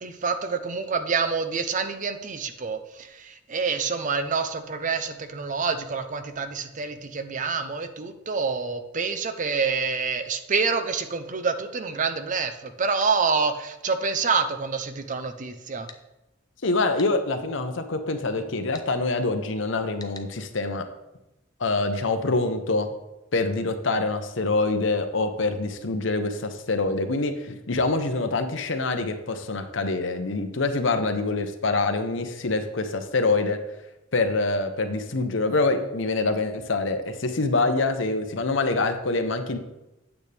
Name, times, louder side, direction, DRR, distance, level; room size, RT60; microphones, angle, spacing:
voice 1, 0.0-15.9, right 5 dB, 40° right, 9 dB, 0.6 m, -27 dB
sound 1, 13.0-13.2 15.9-16.0 17.0-17.1 18.7-18.9 20.0-20.3, left 4 dB, 20° left, 0.6 m, -44 dB
voice 2, 16.6-20.8 21.6-22.9 23.3-33.6 34.1-39.6, left 3 dB, 70° left, 7 dB, 0.9 m, -25 dB
9.0 x 8.1 x 3.4 m, 0.95 s
head